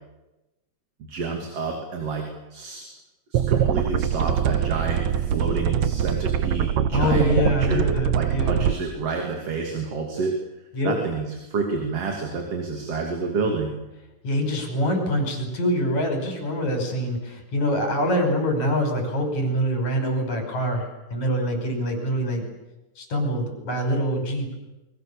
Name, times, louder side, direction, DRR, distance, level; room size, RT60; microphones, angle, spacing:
voice 1, 1.1-2.9 3.3-7.3 7.6-7.9 8.1-10.4 10.8-13.8, right 4 dB, 55° right, 2 dB, 3.7 m, -29 dB
sound 1, 3.3-8.7, right 9 dB, 75° right, 2.3 m, -23 dB
voice 2, 6.9-8.6 10.7-10.9 14.2-22.4 23.0-24.5, equal, 75° left, 4 dB, 6.8 m, -25 dB
29.0 x 23.0 x 7.1 m, 1.0 s
omnidirectional pair, 3.3 m